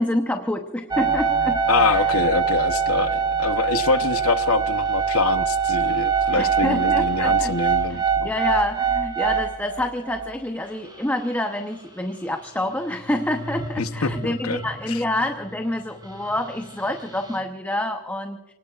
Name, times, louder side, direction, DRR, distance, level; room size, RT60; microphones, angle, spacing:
voice 1, 0.0-1.6 1.9-2.1 6.4-18.5, left 1 dB, 10° left, 4 dB, 0.9 m, -27 dB
sound 1, 0.9-10.3 11.0-11.1 11.3-11.4 12.9-15.7 16.0-17.4, right 6 dB, 20° right, 4.1 m, -24 dB
voice 2, 1.7-8.3 13.8-14.6 14.9-15.0, left 4 dB, 75° left, 10 dB, 0.9 m, -25 dB
29.5 x 19.0 x 2.5 m, 1.1 s
head